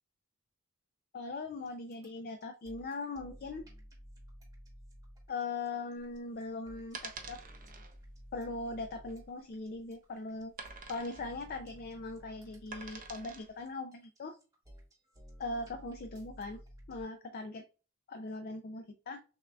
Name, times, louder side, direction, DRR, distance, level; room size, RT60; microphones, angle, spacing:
voice 1, 1.1-3.6 5.3-7.4 8.3-10.5 10.9-14.4 15.4-16.6 16.9-17.6 18.1-19.2, left 3 dB, 45° left, 6 dB, 0.4 m, -40 dB
sound 1, 1.7-17.0, equal, 15° right, 1.0 m, -54 dB
sound 2, 6.0-13.6, right 4 dB, 40° right, 0.6 m, -48 dB
6.3 x 2.5 x 2.2 m, 0.34 s
head